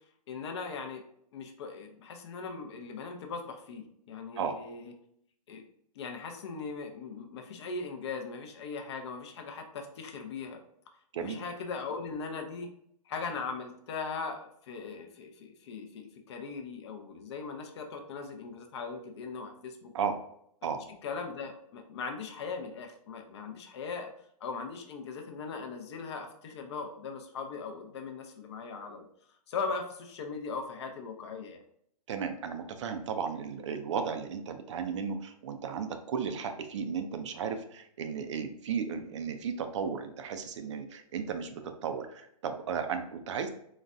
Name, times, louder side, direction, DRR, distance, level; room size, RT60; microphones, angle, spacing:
voice 1, 0.3-1.0 1.3-4.9 5.5-5.7 5.9-10.6 11.2-12.7 13.1-19.9 21.0-24.1 24.4-29.1 29.5-31.6, left 4 dB, 45° left, 5 dB, 0.5 m, -39 dB
voice 2, 32.1-43.5, right 6 dB, 50° right, 7 dB, 0.4 m, -34 dB
3.9 x 2.1 x 2.5 m, 0.70 s
hypercardioid pair, 140°, 20 cm